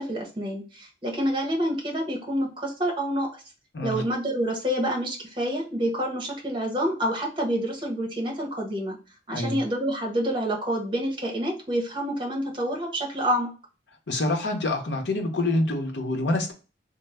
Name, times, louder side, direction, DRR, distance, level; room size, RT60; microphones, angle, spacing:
voice 1, 0.0-3.4 3.8-9.0 9.3-13.5, equal, 30° right, 0 dB, 0.9 m, -28 dB
voice 2, 3.7-4.0 9.3-9.6 14.1-16.5, left 2 dB, 85° left, 4 dB, 0.7 m, -26 dB
3.1 x 2.0 x 3.4 m, 0.34 s
head